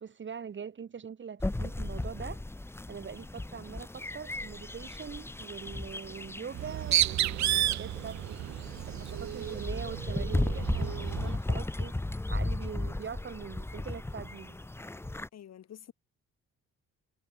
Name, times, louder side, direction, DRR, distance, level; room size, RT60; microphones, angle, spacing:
voice 1, 0.0-2.4 2.9-12.0 12.3-14.6, right 7 dB, 40° right, 1.4 m, -43 dB
sound 1, 1.4-15.3, left 2 dB, 10° left, 0.8 m, -36 dB
Bird, 6.5-11.4, right 13 dB, 65° right, 1.0 m, -31 dB
voice 2, 15.3-15.9, left 10 dB, 60° left, 2.0 m, -48 dB
cardioid pair, 90°, 30 cm